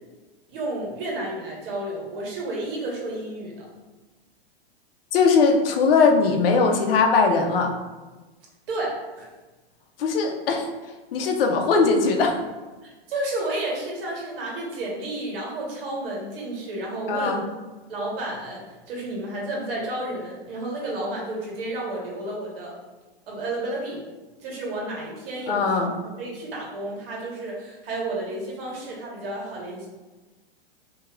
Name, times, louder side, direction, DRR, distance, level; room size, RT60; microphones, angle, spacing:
voice 1, 0.5-3.7 8.7-9.2 12.8-17.4 17.9-22.7 23.3-24.1 24.4-25.9 26.2-29.9, right 2 dB, 60° right, -3 dB, 1.4 m, -31 dB
voice 2, 5.1-7.8 10.0-10.7 11.1-12.4 17.1-17.4 25.5-25.9, left 4 dB, 65° left, 3 dB, 0.7 m, -20 dB
4.5 x 2.9 x 2.4 m, 1.2 s
hypercardioid pair, 125°, 31 cm